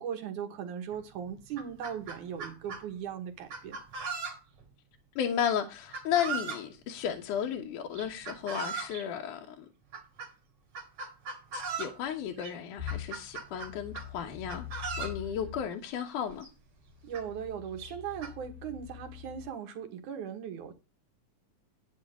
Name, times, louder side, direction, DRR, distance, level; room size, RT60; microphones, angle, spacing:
voice 1, 0.0-3.8 17.0-20.7, right 8 dB, 80° right, 2.9 m, -38 dB
Chicken rooster, 0.9-1.0 1.4-2.8 3.5-4.6 5.9-6.7 8.0-9.0 9.9-10.3 10.8-12.0 12.4-12.5 12.9-14.1 14.5-15.2 16.1-16.2 16.4-16.5 17.1-17.2 17.8-18.3, right 5 dB, 55° right, 3.7 m, -38 dB
voice 2, 5.2-9.7 11.5-14.7 15.0-16.5, left 9 dB, 85° left, 2.8 m, -33 dB
sound 1, 12.8-15.7 16.3-19.5, left 12 dB, 25° right, 0.8 m, -44 dB
11.0 x 9.6 x 3.7 m
omnidirectional pair, 3.5 m